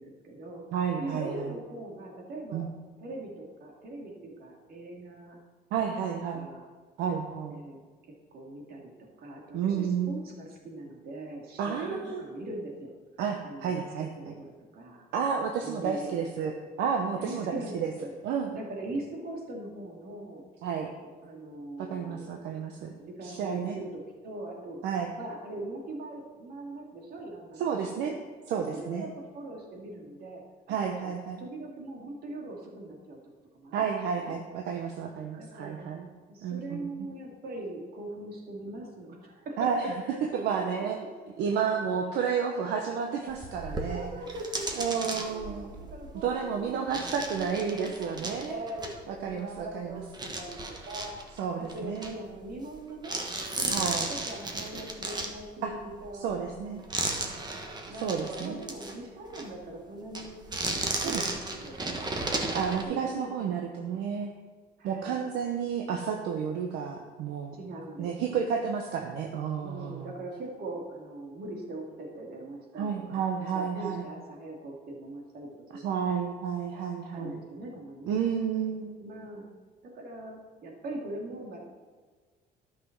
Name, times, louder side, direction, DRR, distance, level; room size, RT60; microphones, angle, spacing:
voice 1, 0.0-0.6 1.0-2.6 3.0-5.4 6.3-6.6 7.5-7.8 8.0-12.9 13.4-14.5 14.7-15.1 15.6-16.1 17.2-18.1 18.5-20.5 21.2-24.8 25.2-27.6 28.0-28.2 28.7-31.1 31.4-33.2 33.5-33.9 34.2-34.3 35.3-35.9 36.3-40.2 40.5-40.8 41.5-41.6 42.1-42.2 43.7-47.0 47.4-50.6 50.8-51.2 51.6-53.2 53.6-56.8 57.9-60.4 60.7-62.5 62.9-63.7 64.8-65.2 67.5-68.4 69.6-75.8 77.1-78.2 79.0-79.4 79.8-81.6, right 2 dB, 65° right, -1 dB, 2.6 m, -41 dB
voice 2, 0.7-1.5 2.5-2.7 5.7-6.5 7.0-7.6 9.5-10.1 11.6-12.2 13.2-14.3 15.1-16.5 16.8-17.9 18.2-18.5 20.6-20.9 21.8-22.9 23.2-23.8 24.8-25.1 27.6-28.2 28.5-29.1 30.7-31.4 33.7-36.1 36.4-36.9 39.6-39.9 40.3-41.0 41.4-44.1 44.8-45.9 46.1-48.6 49.1-50.0 51.4-52.2 53.7-54.1 55.6-55.7 56.2-56.8 57.9-58.6 61.0-61.2 62.2-64.3 64.8-67.5 68.0-70.1 72.8-74.1 75.7-77.4 78.1-79.0, right 7 dB, 85° right, 3 dB, 0.9 m, -31 dB
sound 1, 43.3-49.8 50.1-52.8 53.0-59.0 59.3-59.5 60.1-62.8, right 2 dB, 25° right, 1.5 m, -35 dB
11.5 x 6.1 x 6.0 m, 1.5 s
cardioid pair, 110°, 17 cm